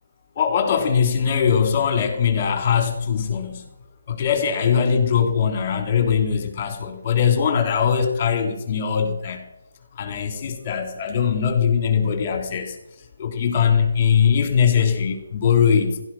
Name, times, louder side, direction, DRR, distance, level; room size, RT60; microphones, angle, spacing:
voice 1, 0.3-3.7 4.1-9.4 10.0-12.8 13.2-16.0, left 7 dB, 30° left, 6 dB, 3.4 m, -21 dB
16.5 x 12.5 x 6.2 m, 0.92 s
hypercardioid pair, 165°, 0 cm